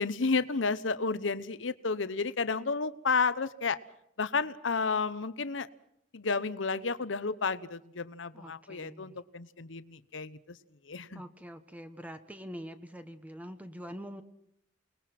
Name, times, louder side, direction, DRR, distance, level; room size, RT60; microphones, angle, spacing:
voice 1, 0.0-3.8 4.2-5.7 6.1-10.6 10.9-11.2, left 4 dB, 85° left, 15 dB, 1.0 m, -31 dB
voice 2, 8.3-9.2 11.1-14.2, equal, 10° right, 9 dB, 1.0 m, -45 dB
29.0 x 20.0 x 6.0 m, 0.79 s
head